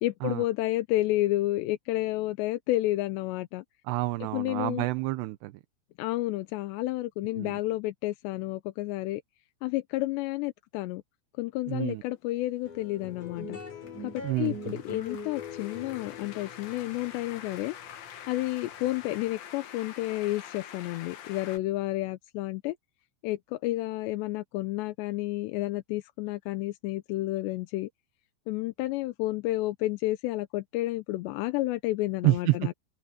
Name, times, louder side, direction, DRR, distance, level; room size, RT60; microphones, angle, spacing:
voice 1, 0.0-3.6 4.3-4.8 6.0-9.2 9.6-11.0 11.4-13.6 14.0-17.8 18.3-22.8 23.2-27.9 28.5-32.7, left 17 dB, 85° left, 3.0 m, -31 dB
voice 2, 3.9-5.5 7.4-7.6 11.7-12.0 14.2-14.8 32.2-32.6, right 19 dB, 80° right, 2.9 m, -28 dB
sound 1, 12.3-21.6, left 9 dB, 65° left, 3.4 m, -47 dB
sound 2, 12.7-19.3, left 4 dB, 45° left, 7.7 m, -42 dB
omnidirectional pair, 4.9 m